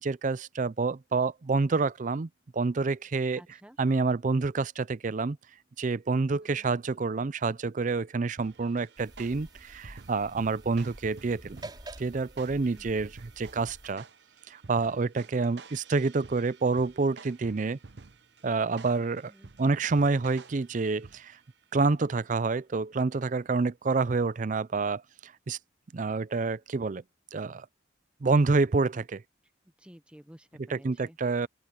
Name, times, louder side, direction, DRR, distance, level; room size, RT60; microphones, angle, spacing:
voice 1, 0.0-3.4 3.8-5.4 5.8-11.6 12.0-14.0 14.5-17.8 18.4-19.3 19.6-21.4 21.7-25.6 25.9-27.0 27.3-27.7 28.2-29.2 30.7-31.5, right 4 dB, 40° right, 0.5 m, -28 dB
voice 2, 3.4-3.8 6.4-6.8 12.7-13.1 19.3-19.8 29.8-31.2, equal, 5° right, 0.8 m, -54 dB
sound 1, 8.4-21.5, right 4 dB, 60° right, 0.8 m, -51 dB
sound 2, 9.0-13.9, right 1 dB, 25° right, 4.9 m, -48 dB
open air
head